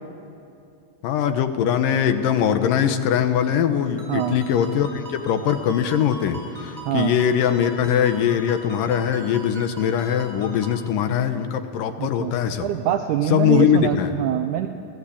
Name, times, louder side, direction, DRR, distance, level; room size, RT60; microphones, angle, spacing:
voice 1, 1.0-12.7 13.3-14.2, left 9 dB, 90° left, 8 dB, 2.8 m, -21 dB
Ringtone, 4.0-10.8, right 1 dB, 10° right, 6.1 m, -41 dB
voice 2, 6.9-7.2 12.0-12.3 12.6-14.7, right 11 dB, 75° right, 7 dB, 2.1 m, -24 dB
30.0 x 15.5 x 8.6 m, 2.6 s
omnidirectional pair, 3.7 m